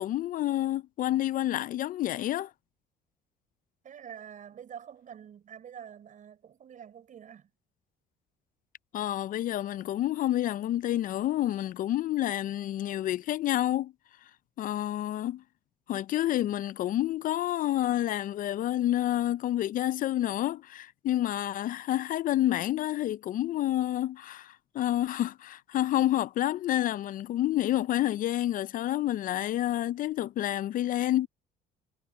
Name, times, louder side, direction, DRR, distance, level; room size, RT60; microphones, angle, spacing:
voice 1, 0.0-2.5 8.9-13.9 14.6-15.4 15.9-31.3, left 13 dB, 55° left, 0.4 m, -29 dB
voice 2, 3.8-7.5, right 8 dB, 50° right, 6.4 m, -46 dB
cardioid pair, 110°, 17 cm